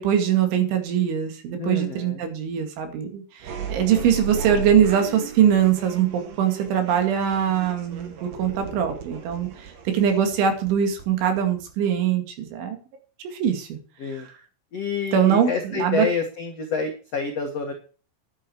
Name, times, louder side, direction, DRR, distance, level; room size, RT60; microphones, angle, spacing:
voice 1, 0.0-12.8 13.3-13.8 14.1-14.2 15.1-16.1, right 9 dB, 75° right, 5 dB, 4.5 m, -22 dB
voice 2, 1.6-2.2 14.0-14.3 14.7-17.7, left 5 dB, 85° left, 3 dB, 1.4 m, -28 dB
sound 1, 3.4-12.0, right 6 dB, 60° right, 2.6 m, -36 dB
11.0 x 9.5 x 4.6 m, 0.37 s
omnidirectional pair, 5.6 m